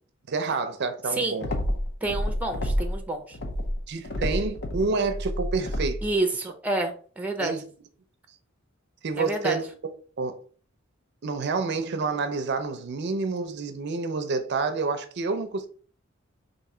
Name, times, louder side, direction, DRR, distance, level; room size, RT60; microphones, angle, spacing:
voice 1, 0.3-1.5 3.9-6.0 7.4-7.6 9.0-9.7 10.2-10.4 11.2-15.7, right 4 dB, 55° right, 0.5 m, -28 dB
sound 1, 1.4-3.0 3.3-6.1, equal, 55° left, 0.7 m, -29 dB
voice 2, 2.0-3.4 6.0-7.5 9.2-9.6, right 2 dB, 5° right, 0.5 m, -28 dB
3.7 x 2.6 x 4.2 m
head